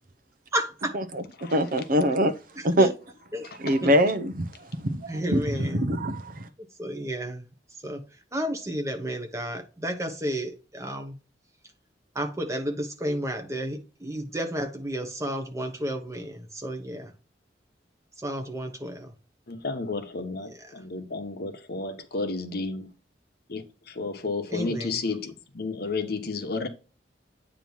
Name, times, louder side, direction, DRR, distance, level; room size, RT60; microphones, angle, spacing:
voice 1, 0.5-1.0 2.6-2.9 3.3-3.5 3.8-3.9 5.1-5.9 6.8-7.4 7.8-8.0 8.3-11.2 12.1-17.1 18.2-19.1 20.7-20.8 24.5-25.0, right 1 dB, 15° right, 1.2 m, -32 dB
voice 2, 1.5-2.3 2.6-2.9 3.6-4.5 4.8-6.5, equal, 50° right, 0.7 m, -23 dB
voice 3, 19.5-22.9 23.5-26.7, left 3 dB, 60° left, 1.1 m, -32 dB
8.8 x 3.1 x 5.5 m
head